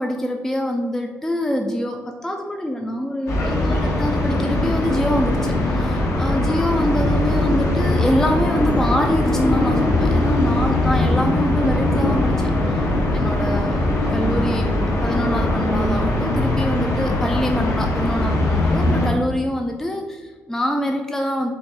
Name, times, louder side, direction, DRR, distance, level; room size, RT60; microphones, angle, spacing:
voice 1, 0.0-12.9 13.1-14.7 15.0-21.5, left 1 dB, 10° left, 3 dB, 0.3 m, -25 dB
sound 1, 3.3-19.1, left 1 dB, 55° left, 1.0 m, -20 dB
4.4 x 2.6 x 2.7 m, 1.3 s
supercardioid pair, 60°, 6 cm